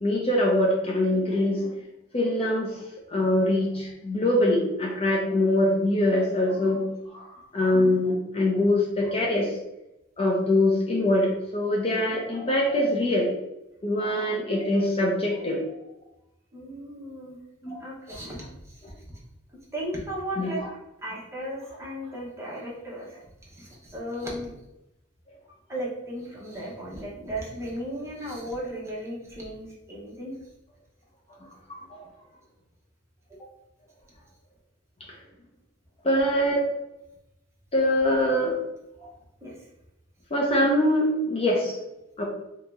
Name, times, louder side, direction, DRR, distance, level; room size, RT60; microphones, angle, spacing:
voice 1, 0.0-1.7 2.1-2.8 3.1-6.8 7.1-7.3 7.5-9.5 10.2-13.3 13.8-15.6 17.6-17.8 20.4-20.5 31.7-32.0 36.0-36.7 37.7-38.5 40.3-41.8 42.2-42.3, left 1 dB, 30° left, -2 dB, 0.5 m, -23 dB
voice 2, 16.5-17.4 17.8-18.8 19.7-20.6 21.0-23.2 23.5-24.5 25.7-30.3 39.4-39.6, equal, 15° right, -5 dB, 0.9 m, -35 dB
2.9 x 2.8 x 3.4 m, 0.90 s
head